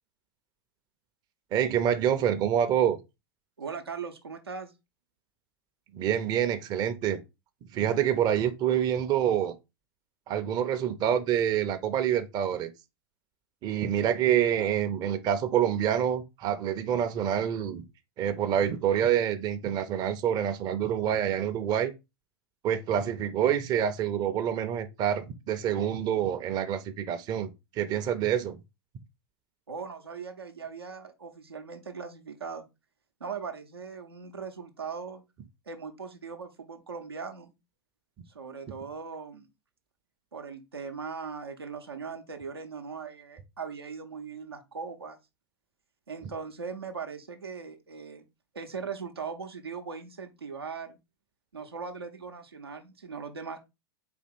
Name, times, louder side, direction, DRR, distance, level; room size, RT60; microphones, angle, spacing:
voice 1, 1.5-3.0 5.9-7.2 7.7-9.5 10.3-12.7 13.6-17.8 18.2-21.9 22.6-28.6, right 9 dB, 30° right, 0.6 m, -27 dB
voice 2, 3.6-4.7 29.7-32.6 33.2-35.2 35.7-37.5 38.3-39.5 40.3-45.2 46.1-48.3 48.5-51.0 51.5-53.7, right 5 dB, 85° right, 0.7 m, -39 dB
4.3 x 2.8 x 4.1 m
figure-of-eight pair, 95°, 13 cm